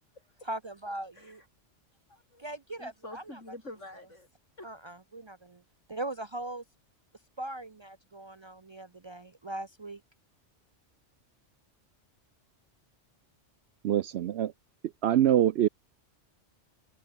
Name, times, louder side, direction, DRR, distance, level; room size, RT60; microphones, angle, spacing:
voice 1, 0.4-1.4 2.4-3.4 4.6-5.6 5.9-6.6 7.4-10.0, right 1 dB, 45° right, 0.3 m, -40 dB
voice 2, 2.1-2.4 2.8-4.3 4.6-4.7, left 2 dB, 80° left, 6.6 m, -46 dB
voice 3, 13.8-14.5 15.0-15.7, right 11 dB, 65° right, 0.8 m, -24 dB
omnidirectional pair, 1.2 m